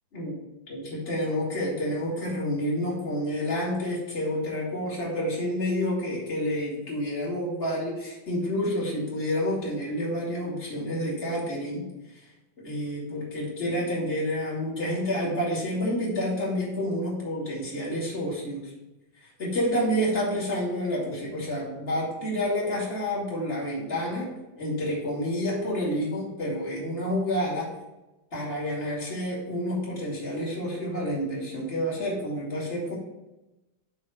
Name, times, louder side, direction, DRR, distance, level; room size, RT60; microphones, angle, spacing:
voice 1, 0.7-11.9 12.6-18.7 19.4-27.7 28.3-33.0, equal, 20° left, -6 dB, 1.8 m, -29 dB
6.7 x 3.6 x 6.2 m, 0.99 s
omnidirectional pair, 4.0 m